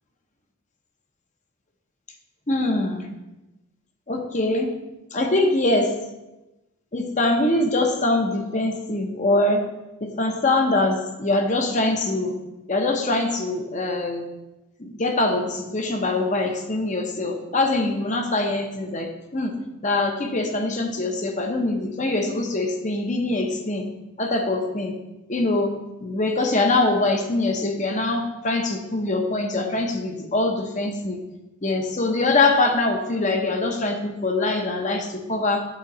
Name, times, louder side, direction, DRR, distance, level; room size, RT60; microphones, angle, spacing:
voice 1, 2.5-3.1 4.1-4.7 5.1-5.9 6.9-9.6 10.0-12.4 12.7-14.3 14.8-19.5 19.8-23.9 24.2-24.9 25.3-25.7 26.0-31.2 31.6-35.7, left 2 dB, 35° left, 4 dB, 0.8 m, -23 dB
8.7 x 3.7 x 6.1 m, 1.0 s
head